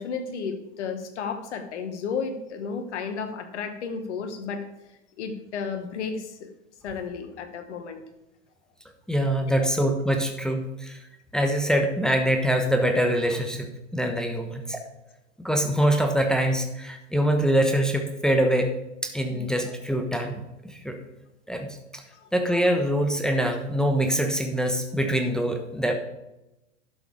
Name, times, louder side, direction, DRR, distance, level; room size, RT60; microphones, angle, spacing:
voice 1, 0.0-4.7 5.2-6.5 6.8-8.0 19.3-19.4 22.1-22.3, left 5 dB, 65° left, 8 dB, 1.8 m, -33 dB
voice 2, 9.1-11.0 11.3-13.7 13.9-14.8 15.4-18.7 19.0-21.0 21.5-22.0 22.3-25.9, right 1 dB, ahead, 4 dB, 1.1 m, -24 dB
12.0 x 6.8 x 5.0 m, 0.94 s
hypercardioid pair, 105°, 38 cm